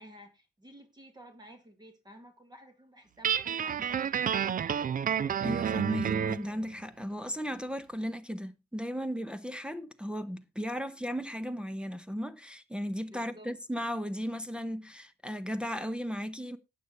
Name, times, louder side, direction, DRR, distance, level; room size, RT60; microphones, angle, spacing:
voice 1, 0.0-4.5 13.1-13.5, equal, 20° right, 2.2 m, -53 dB
Guitar, 3.2-6.5, right 8 dB, 45° right, 0.6 m, -30 dB
voice 2, 5.4-16.6, equal, 5° right, 0.8 m, -35 dB
12.0 x 8.2 x 4.2 m
cardioid pair, 90°, 20 cm